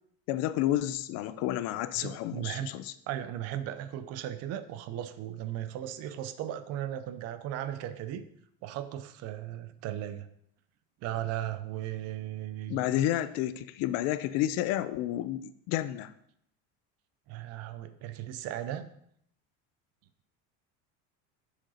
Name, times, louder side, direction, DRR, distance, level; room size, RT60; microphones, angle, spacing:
voice 1, 0.3-2.9 12.7-16.1, left 13 dB, 50° left, 13 dB, 0.4 m, -30 dB
voice 2, 2.0-2.7 3.1-8.2 8.6-10.3 11.0-12.8 17.3-18.9, right 12 dB, 50° right, 11 dB, 0.6 m, -36 dB
6.3 x 5.1 x 4.2 m, 0.71 s
cardioid pair, 155°, 31 cm